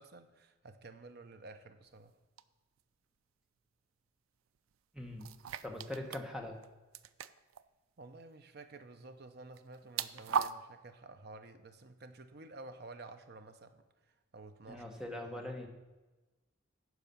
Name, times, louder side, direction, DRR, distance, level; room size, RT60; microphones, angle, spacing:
voice 1, 0.0-2.1 8.0-13.8 14.3-14.8 15.2-15.5, right 3 dB, 50° right, 9 dB, 0.6 m, -52 dB
sound 1, 2.4-2.5 5.2-6.2 6.5-6.7 6.9-7.6 9.5-10.5, right 7 dB, 90° right, 0.4 m, -37 dB
voice 2, 4.9-5.3 5.6-6.6 14.7-15.7, left 1 dB, 5° right, 2 dB, 1.0 m, -42 dB
10.5 x 4.9 x 7.0 m, 1.2 s
head